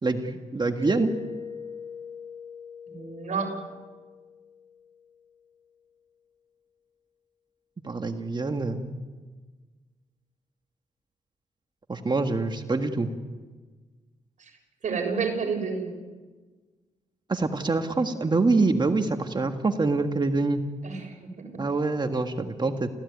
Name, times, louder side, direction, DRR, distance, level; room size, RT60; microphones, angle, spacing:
voice 1, 0.0-1.1 7.8-8.9 11.9-13.1 17.3-20.6 21.6-22.9, right 3 dB, 35° right, 6 dB, 1.8 m, -25 dB
Mallet percussion, 0.8-5.4, left 6 dB, 15° left, 5.5 m, -42 dB
voice 2, 2.9-3.5 14.4-14.5 14.8-15.9 20.8-21.6, right 5 dB, 65° right, 3 dB, 7.1 m, -30 dB
29.0 x 15.5 x 9.6 m, 1.4 s
cardioid pair, 70°, 14 cm